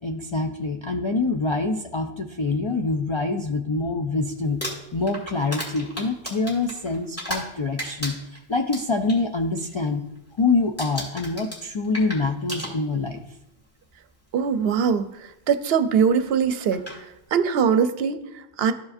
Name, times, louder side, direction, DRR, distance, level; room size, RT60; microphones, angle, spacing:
voice 1, 0.0-4.6 4.9-10.0 10.4-13.2, left 3 dB, 50° left, 3 dB, 0.3 m, -25 dB
Crumpling crinkling, 4.4-7.5 7.8-9.2 9.6-9.9 10.1-10.5 10.8-13.2 14.1-14.2 16.2-16.3 16.7-17.0, equal, 15° left, 2.0 m, -34 dB
voice 2, 14.3-16.8 17.3-18.7, right 6 dB, 75° right, 10 dB, 0.8 m, -22 dB
13.5 x 4.8 x 2.5 m, 0.88 s
omnidirectional pair, 1.1 m